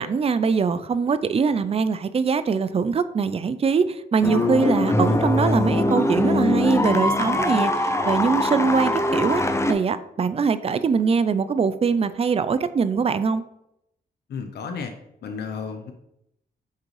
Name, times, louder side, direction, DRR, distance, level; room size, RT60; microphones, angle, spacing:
voice 1, 0.0-7.7 8.0-9.4 9.7-13.4, right 5 dB, 35° right, 13 dB, 0.5 m, -22 dB
sound 1, 4.2-9.7, left 2 dB, 15° left, 0.8 m, -22 dB
voice 2, 14.3-14.9 15.2-15.9, left 5 dB, 80° left, 5 dB, 0.7 m, -32 dB
8.2 x 3.8 x 3.2 m, 0.80 s
cardioid pair, 70°, 17 cm